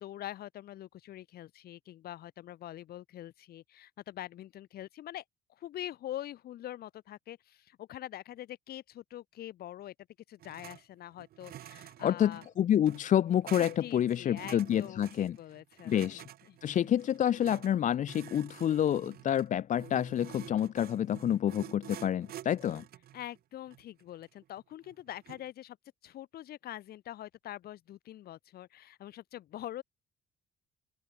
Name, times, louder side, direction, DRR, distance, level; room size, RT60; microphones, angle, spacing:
voice 1, 0.0-5.2 5.6-9.9 10.3-12.4 13.6-16.2 16.5-16.8 23.1-25.8 26.0-29.8, left 13 dB, 65° left, 3.6 m, -44 dB
sound 1, 10.4-10.8 11.1-25.5, right 13 dB, 65° right, 2.2 m, -50 dB
voice 2, 12.0-15.4 15.8-16.2 16.6-22.8, left 10 dB, 50° left, 0.8 m, -28 dB
open air
cardioid pair, 110°, 17 cm